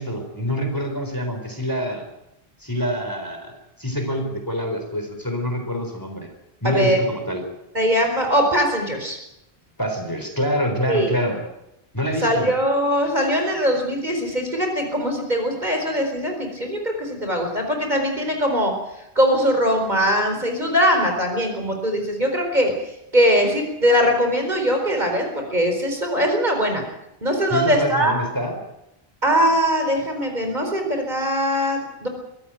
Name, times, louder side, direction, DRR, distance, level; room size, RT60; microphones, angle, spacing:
voice 1, 0.0-2.1 2.6-3.5 3.8-6.3 6.6-7.5 9.8-11.4 11.9-12.5 27.5-28.6, equal, 20° left, 4 dB, 4.0 m, -26 dB
voice 2, 6.6-7.0 7.7-9.2 10.9-11.1 12.2-18.7 19.1-22.7 23.1-26.8 27.2-28.1 29.2-32.1, equal, 45° right, 3 dB, 4.6 m, -21 dB
23.5 x 14.5 x 9.1 m, 0.87 s
omnidirectional pair, 1.0 m